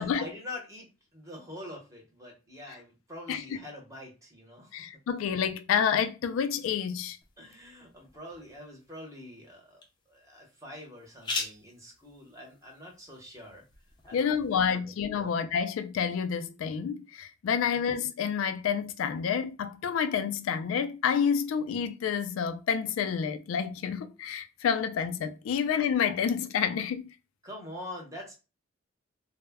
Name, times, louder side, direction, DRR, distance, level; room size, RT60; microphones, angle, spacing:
voice 1, 0.2-4.9 7.4-9.8 10.1-13.6 14.1-15.3 17.7-17.9 27.4-28.3, left 1 dB, 15° right, 0.8 m, -45 dB
voice 2, 4.7-7.2 14.1-27.0, left 7 dB, 90° left, 0.3 m, -29 dB
sound 1, 7.2-14.7, left 3 dB, 25° left, 0.5 m, -43 dB
2.1 x 2.1 x 3.4 m
head